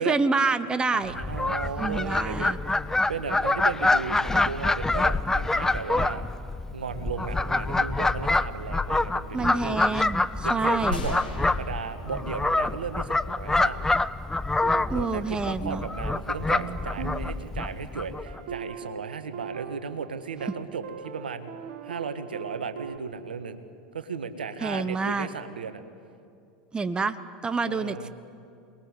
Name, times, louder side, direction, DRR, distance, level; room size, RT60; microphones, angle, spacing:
voice 1, 0.0-1.1 1.8-2.6 9.3-11.1 14.9-15.8 24.6-25.3 26.7-27.2 27.4-28.1, right 4 dB, 15° right, 13 dB, 1.1 m, -27 dB
voice 2, 0.9-2.8 3.1-6.2 6.7-9.8 10.4-13.8 14.9-21.5 21.8-23.6 23.9-25.8 27.6-28.1, right 5 dB, 85° right, 9 dB, 1.6 m, -35 dB
Fowl, 1.1-18.4, left 2 dB, 10° left, 0.7 m, -26 dB
sound 1, 10.9-13.2, left 4 dB, 85° left, 5.8 m, -37 dB
sound 2, 14.6-15.9 16.3-23.0, right 6 dB, 60° right, 2.1 m, -41 dB
27.5 x 20.5 x 9.9 m, 2.5 s
hypercardioid pair, 85°, 5 cm